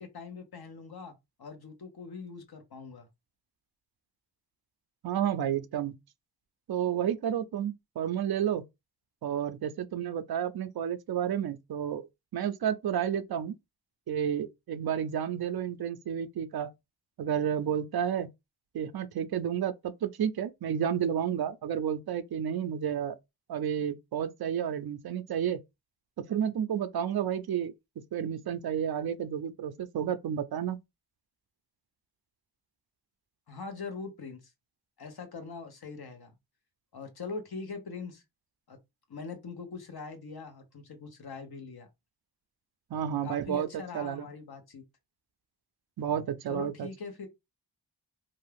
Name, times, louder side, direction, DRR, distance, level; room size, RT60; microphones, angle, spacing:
voice 1, 0.0-3.1 33.5-34.4 35.0-36.3 36.9-38.2 38.7-38.8 39.1-41.9 43.2-44.8 46.5-47.3, left 4 dB, 60° left, 1.0 m, -42 dB
voice 2, 5.0-5.9 6.7-8.6 9.2-12.1 12.3-13.5 14.1-16.7 17.2-18.3 18.7-23.2 23.5-25.6 26.3-27.7 28.1-30.8 42.9-44.3 46.0-46.9, right 9 dB, 60° right, 0.5 m, -31 dB
2.6 x 2.3 x 3.3 m
cardioid pair, 60°, 43 cm